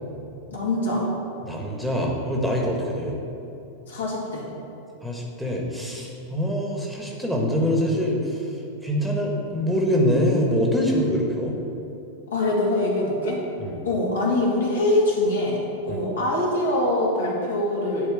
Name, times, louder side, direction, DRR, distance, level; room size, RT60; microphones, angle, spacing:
voice 1, 0.5-1.1 3.9-4.5 12.3-13.4 13.8-18.1, left 1 dB, 65° left, -3 dB, 2.2 m, -23 dB
voice 2, 1.4-3.2 5.0-8.6 8.8-11.5 13.6-13.8 15.9-16.0, equal, ahead, -2 dB, 1.4 m, -24 dB
11.0 x 4.1 x 7.1 m, 2.9 s
figure-of-eight pair, 90°, 0 cm